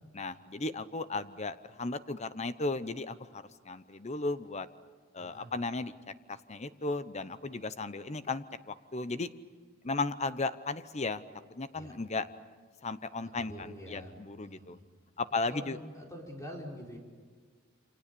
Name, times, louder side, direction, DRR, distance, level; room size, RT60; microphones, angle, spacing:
voice 1, 0.1-4.7 5.1-5.9 6.3-9.3 9.8-11.2 11.5-12.3 12.8-14.8 15.2-15.8, left 3 dB, 35° left, 13 dB, 0.9 m, -35 dB
voice 2, 5.2-5.5 11.7-11.9 13.4-14.1 14.4-14.8 15.5-17.0, equal, 15° left, -1 dB, 4.4 m, -45 dB
28.5 x 26.0 x 6.9 m, 1.5 s
head